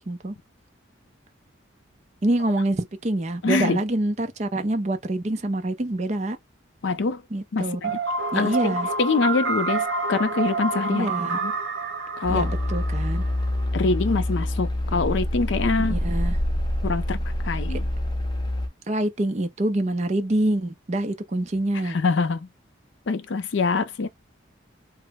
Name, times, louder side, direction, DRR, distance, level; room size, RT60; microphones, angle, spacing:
voice 1, 2.2-6.4 7.3-7.9 8.3-8.9 10.9-11.4 12.3-13.2 15.8-16.4 18.9-22.0, right 1 dB, 35° right, 0.5 m, -26 dB
voice 2, 3.4-3.8 6.8-7.2 7.5-7.7 8.3-11.1 11.4-11.5 12.2-12.5 13.7-16.0 16.8-17.8 21.8-22.5 23.1-24.1, left 4 dB, 65° left, 0.5 m, -24 dB
sound 1, 7.8-13.7, right 3 dB, 60° right, 1.7 m, -28 dB
sound 2, 12.2-18.7, left 1 dB, 20° left, 0.6 m, -26 dB
3.0 x 2.0 x 3.4 m
head